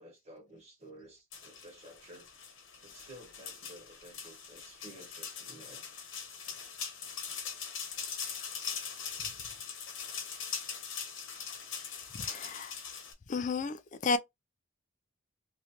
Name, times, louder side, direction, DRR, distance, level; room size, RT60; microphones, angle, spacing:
voice 1, 0.0-2.3 2.8-5.8, right 1 dB, 30° right, 1.2 m, -53 dB
sound 1, 1.3-13.1, left 6 dB, 65° left, 1.0 m, -41 dB
voice 2, 12.2-12.7 13.3-14.2, left 4 dB, 35° left, 0.3 m, -32 dB
3.1 x 2.6 x 2.8 m
head